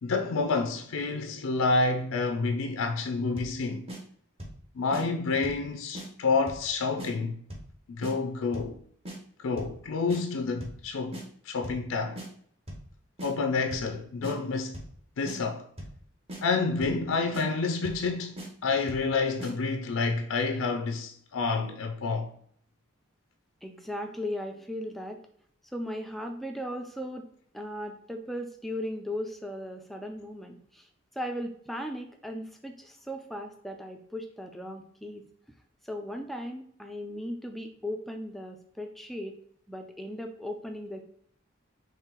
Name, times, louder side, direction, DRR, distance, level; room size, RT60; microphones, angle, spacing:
voice 1, 0.0-3.9 4.7-7.4 7.9-8.7 9.4-11.2 11.5-12.2 13.2-14.8 15.2-15.7 16.4-22.3, left 4 dB, 80° left, 0.5 m, -29 dB
sound 1, 3.4-3.6 3.9-4.0 4.4-4.6 4.9-5.0 5.4-5.7 5.9-6.1 6.5-6.7 7.0-7.1 7.5-7.7 8.0-8.1 8.5-8.8 9.0-9.2 9.6-9.8 10.1-10.2 10.6-10.8 11.1-11.2 11.6-11.9 12.2-12.3 12.7-12.9 13.2-13.3 13.7-13.9 14.2-14.3 14.7-15.0 15.3-15.4 15.8-16.0 16.3-16.4 16.8-17.0 17.3-17.5 17.8-18.1 18.4-18.5 18.9-19.1 19.4-19.5, right 1 dB, 30° right, 0.9 m, -40 dB
voice 2, 23.6-25.2 25.7-27.3 27.5-35.3 35.8-39.4 39.7-41.0, equal, ahead, 0.3 m, -37 dB
4.5 x 3.2 x 3.7 m
head